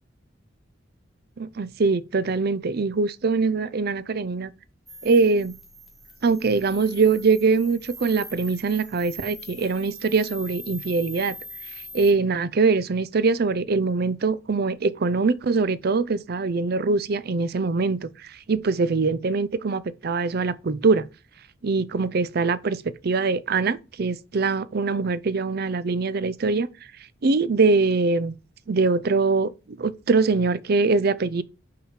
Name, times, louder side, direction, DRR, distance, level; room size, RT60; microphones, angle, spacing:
voice 1, 1.4-4.5 5.0-5.5 6.2-11.3 11.9-18.1 18.5-21.1 21.6-26.7 27.2-28.3 28.7-29.5 29.8-31.4, right 4 dB, 50° right, 0.5 m, -23 dB
sound 1, 4.9-12.1, equal, ahead, 1.3 m, -42 dB
5.8 x 4.9 x 5.6 m
head